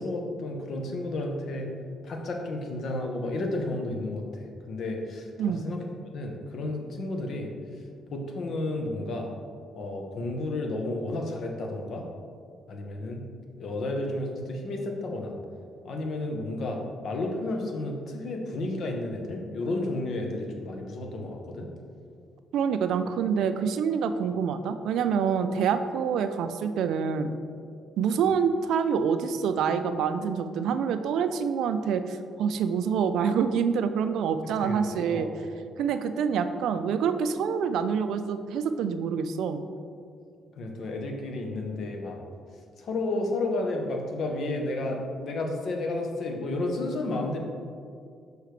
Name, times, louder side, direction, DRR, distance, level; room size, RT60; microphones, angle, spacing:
voice 1, 0.0-1.7 2.0-7.5 8.1-9.3 9.8-12.1 12.7-13.2 13.6-15.3 15.8-21.7 34.6-34.8 35.1-35.4 40.6-42.2 42.8-47.4, left 2 dB, 65° left, 2 dB, 0.9 m, -32 dB
voice 2, 22.5-27.3 28.0-35.3 35.8-39.6, right 6 dB, 80° right, 10 dB, 0.3 m, -26 dB
6.5 x 4.7 x 3.3 m, 2.3 s
cardioid pair, 90°, 0 cm